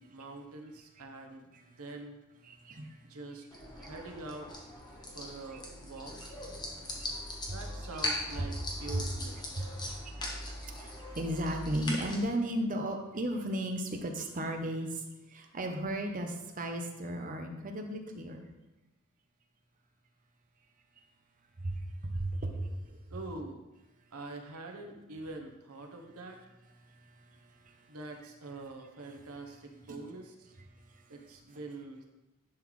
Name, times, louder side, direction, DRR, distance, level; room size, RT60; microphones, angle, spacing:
voice 1, 0.0-2.2 3.0-4.5 5.1-6.3 7.5-9.7 23.1-23.6 24.1-26.4 27.9-30.5 31.1-32.0, right 2 dB, 75° right, 2 dB, 1.0 m, -45 dB
voice 2, 2.4-3.2 3.8-3.9 4.9-5.2 5.5-5.6 6.6-7.5 8.9-9.1 9.6-18.5 21.6-23.0 26.8-28.0 29.9-30.0 30.7-31.6, right 1 dB, 40° right, 4 dB, 0.8 m, -36 dB
sound 1, 3.5-12.2, left 1 dB, 20° left, 1.2 m, -40 dB
10.5 x 4.0 x 3.2 m, 1.0 s
head